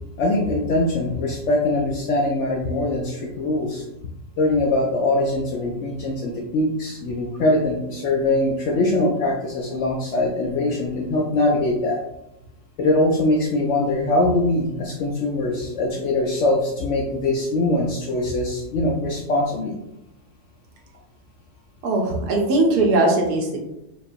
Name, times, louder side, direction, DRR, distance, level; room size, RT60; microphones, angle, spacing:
voice 1, 0.2-3.8 4.4-12.0 12.8-19.8, left 2 dB, 70° left, 0 dB, 0.7 m, -22 dB
voice 2, 21.8-23.6, right 2 dB, 90° right, 1 dB, 1.4 m, -19 dB
5.0 x 2.4 x 2.6 m, 0.88 s
omnidirectional pair, 1.7 m